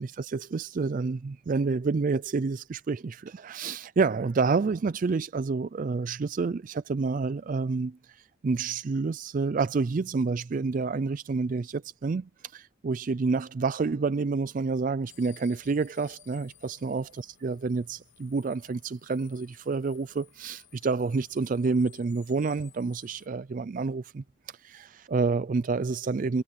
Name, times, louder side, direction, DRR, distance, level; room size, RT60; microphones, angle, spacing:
voice 1, 0.0-24.2 24.6-26.4, right 4 dB, 40° right, 0.4 m, -29 dB
sound 1, 15.1-23.3, left 11 dB, 70° left, 3.1 m, -57 dB
head